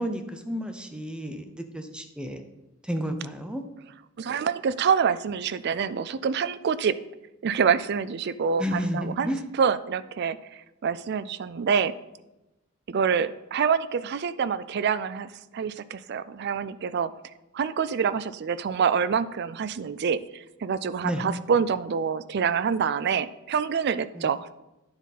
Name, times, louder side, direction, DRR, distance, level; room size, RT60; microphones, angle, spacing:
voice 1, 0.0-2.4 2.8-3.6 8.6-9.4 21.0-21.2 24.1-24.3, equal, 5° right, 6 dB, 0.7 m, -31 dB
voice 2, 4.2-7.0 7.4-9.3 9.6-11.9 12.9-17.1 17.5-24.5, right 6 dB, 55° right, 15 dB, 0.4 m, -26 dB
9.7 x 7.2 x 4.1 m, 0.99 s
head